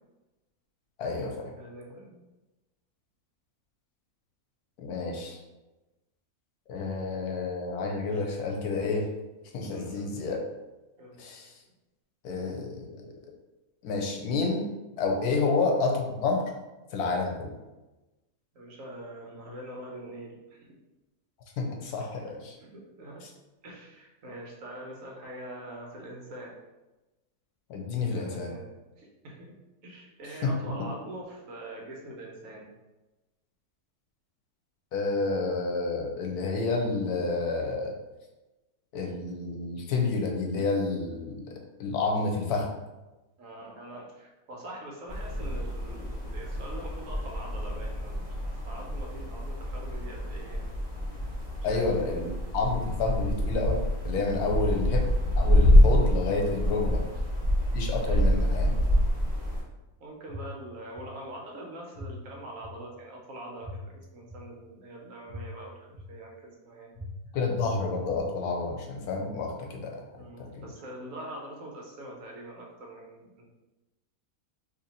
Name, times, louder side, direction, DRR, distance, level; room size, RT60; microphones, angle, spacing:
voice 1, 1.0-1.5 4.8-5.4 6.7-9.1 9.5-10.4 11.2-11.5 12.2-13.1 13.8-14.7 15.0-16.4 16.9-17.5 21.6-22.5 23.2-23.3 27.7-28.5 30.4-30.5 34.9-38.0 38.9-42.7 51.6-57.0 57.7-58.7 67.3-70.0 70.4-70.6, left 3 dB, 90° left, 1 dB, 1.2 m, -29 dB
voice 2, 1.6-2.2 9.7-10.1 11.0-11.2 15.3-15.5 18.5-20.8 22.6-23.2 23.6-26.5 28.1-28.7 29.0-29.5 29.8-32.7 43.4-50.7 51.7-51.9 54.5-54.8 56.9-57.2 58.0-59.0 60.0-66.9 70.2-73.4, right 1 dB, 65° right, -1 dB, 1.1 m, -44 dB
sound 1, 45.1-59.6, equal, 25° right, 1.1 m, -26 dB
sound 2, 60.3-60.4 60.9-61.0 61.9-62.0 62.6-62.7 63.6-63.7 64.3-64.4 65.3-65.4 65.9-66.0 66.9-67.0 67.6-67.7, right 1 dB, 20° left, 0.8 m, -48 dB
2.9 x 2.8 x 4.0 m, 1.1 s
omnidirectional pair, 1.6 m